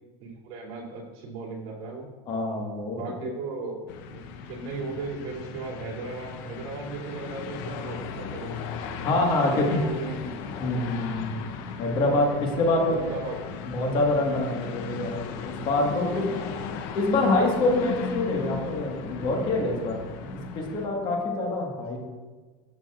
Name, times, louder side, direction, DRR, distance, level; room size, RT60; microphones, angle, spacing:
voice 1, 0.2-2.1 2.9-8.6 9.4-10.4 12.9-13.4 15.9-16.5, right 3 dB, 55° right, -3 dB, 2.7 m, -37 dB
voice 2, 2.2-3.3 9.0-9.8 10.6-11.4 11.8-13.2 13.7-16.2 16.9-22.0, left 2 dB, 40° left, 1 dB, 1.6 m, -26 dB
sound 1, 3.9-20.9, left 6 dB, 65° left, 0.8 m, -37 dB
13.0 x 6.8 x 2.5 m, 1.3 s
supercardioid pair, 145°, 13 cm